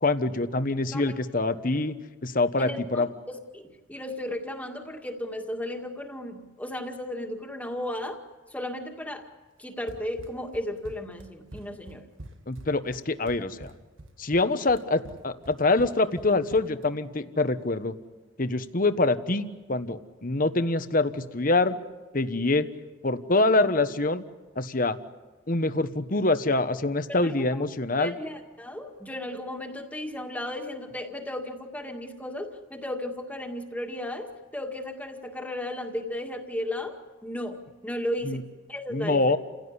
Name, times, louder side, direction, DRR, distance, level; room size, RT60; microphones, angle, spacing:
voice 1, 0.0-1.9 2.2-3.1 12.5-13.7 14.2-17.9 18.4-21.7 22.1-22.7 23.0-24.2 24.6-25.0 25.5-28.1 38.2-38.4 38.9-39.4, left 2 dB, 45° left, 10 dB, 1.2 m, -25 dB
voice 2, 2.6-8.2 8.5-9.3 9.6-12.0 27.1-27.6 28.0-37.0 37.2-38.4 38.7-39.2, left 1 dB, 10° left, 3 dB, 2.0 m, -35 dB
Run, 9.9-16.9, right 1 dB, 90° right, 1.8 m, -46 dB
29.5 x 16.5 x 9.8 m, 1.3 s
head